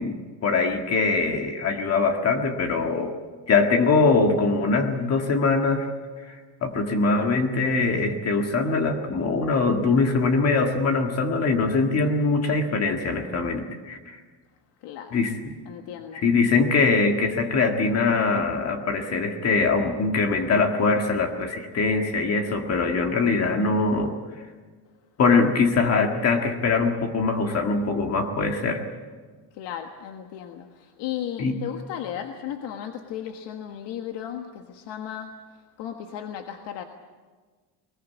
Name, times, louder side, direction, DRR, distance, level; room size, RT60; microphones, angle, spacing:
voice 1, 0.0-3.1 3.5-5.9 6.3-6.4 6.6-14.2 15.1-15.5 16.1-24.1 25.2-28.8 31.4-31.6, left 4 dB, 35° left, 4 dB, 1.9 m, -22 dB
voice 2, 14.8-15.2 15.7-16.2 29.6-35.3 35.8-36.8, left 10 dB, 85° left, 5 dB, 1.7 m, -35 dB
21.0 x 21.0 x 8.5 m, 1.4 s
cardioid pair, 180°, 42 cm